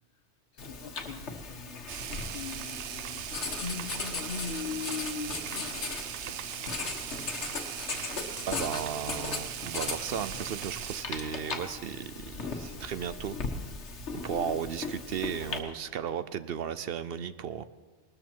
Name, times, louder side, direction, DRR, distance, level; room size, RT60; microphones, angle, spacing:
voice 1, 0.5-3.3 3.6-6.4, left 5 dB, 60° left, 10 dB, 1.1 m, -40 dB
Writing, 0.6-15.6, left 4 dB, 85° left, 1.6 m, -38 dB
sound 1, 1.9-11.0, right 10 dB, 90° right, 0.9 m, -39 dB
voice 2, 8.5-13.4 14.2-17.6, right 8 dB, 65° right, 14 dB, 0.8 m, -35 dB
19.5 x 13.0 x 4.5 m, 1.4 s
omnidirectional pair, 1.1 m